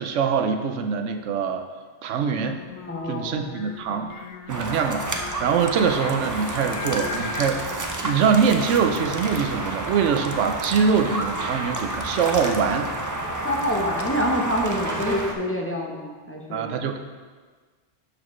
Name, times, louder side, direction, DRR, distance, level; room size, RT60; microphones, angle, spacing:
voice 1, 0.0-1.7 2.0-2.6 3.1-5.0 5.4-12.9 16.5-17.0, right 6 dB, 90° right, 6 dB, 1.0 m, -23 dB
Singing, 2.5-7.5, left 5 dB, 75° left, 0.9 m, -38 dB
voice 2, 2.9-3.5 13.4-16.8, equal, 15° left, -1 dB, 0.7 m, -26 dB
sound 1, 4.5-15.3, right 2 dB, 25° right, 0.4 m, -30 dB
12.0 x 4.8 x 3.1 m, 1.4 s
omnidirectional pair, 1.2 m